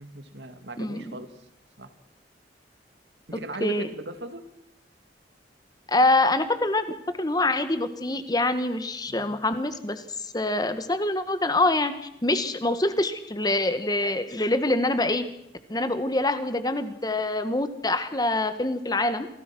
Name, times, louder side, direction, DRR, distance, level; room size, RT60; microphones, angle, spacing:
voice 1, 0.0-1.3 1.8-1.9 3.3-4.4 9.1-9.3, right 2 dB, 85° right, 8 dB, 2.4 m, -38 dB
voice 2, 0.8-1.1 3.6-3.9 5.9-6.8 7.2-10.0 10.3-11.9 12.2-15.2 15.7-19.3, left 2 dB, 25° left, 10 dB, 1.5 m, -25 dB
27.0 x 18.0 x 6.2 m, 0.78 s
head